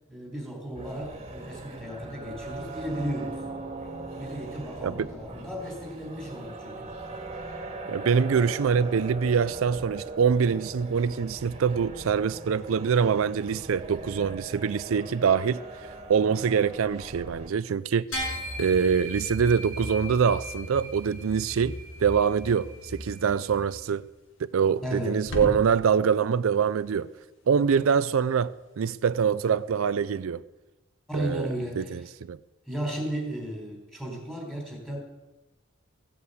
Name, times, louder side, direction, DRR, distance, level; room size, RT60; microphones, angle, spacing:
voice 1, 0.1-3.4 4.2-6.9 24.8-25.2 31.1-32.1 32.7-35.0, right 1 dB, ahead, 3.7 m, -34 dB
sound 1, 0.7-17.5, right 2 dB, 30° right, 1.9 m, -40 dB
voice 2, 7.9-15.6 16.1-18.2 18.6-24.0 24.4-27.1 27.5-30.4 31.1-31.5 31.8-32.4, right 6 dB, 80° right, 0.4 m, -24 dB
sound 2, 18.1-23.7, equal, 85° left, 7.0 m, -37 dB
sound 3, 21.2-30.1, left 1 dB, 65° left, 2.0 m, -44 dB
15.5 x 8.4 x 8.0 m
head